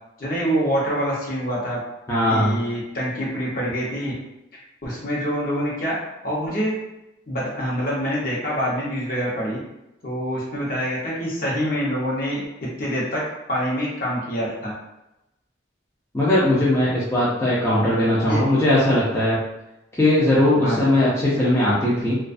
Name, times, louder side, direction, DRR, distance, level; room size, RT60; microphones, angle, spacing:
voice 1, 0.2-1.8 2.3-4.1 4.8-6.0 6.2-6.7 7.3-9.6 10.0-13.2 13.5-14.7 18.2-18.4 20.6-20.8, equal, 50° left, -5 dB, 0.8 m, -25 dB
voice 2, 2.1-2.6 16.1-19.4 20.0-22.2, left 1 dB, 15° left, -9 dB, 0.4 m, -19 dB
2.4 x 2.3 x 2.5 m, 0.91 s
head